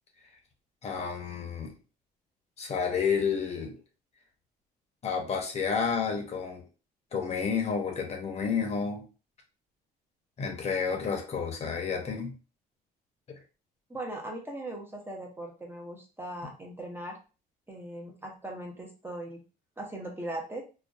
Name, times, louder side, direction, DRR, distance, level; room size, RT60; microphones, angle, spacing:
voice 1, 0.8-1.7 2.6-3.8 5.0-6.6 7.1-9.0 10.4-12.4, left 6 dB, 40° left, 2 dB, 0.7 m, -30 dB
voice 2, 13.9-17.2 17.7-19.4 19.8-20.6, right 1 dB, 15° right, -1 dB, 0.6 m, -39 dB
2.5 x 2.2 x 2.3 m, 0.34 s
cardioid pair, 110°, 17 cm